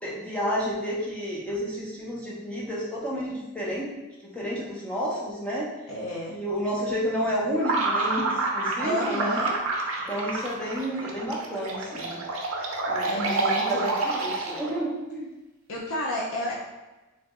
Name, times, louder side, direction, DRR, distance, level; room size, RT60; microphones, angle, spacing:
voice 1, 0.0-3.9 4.2-5.7 6.3-9.4 10.1-12.2 12.9-15.3, equal, 5° left, -6 dB, 0.8 m, -30 dB
voice 2, 5.9-6.3 8.8-9.6 13.0-13.9 15.7-16.5, left 1 dB, 75° left, -5 dB, 0.7 m, -30 dB
sound 1, 7.6-14.8, right 3 dB, 75° right, 0.7 m, -28 dB
4.0 x 2.6 x 3.5 m, 1.1 s
head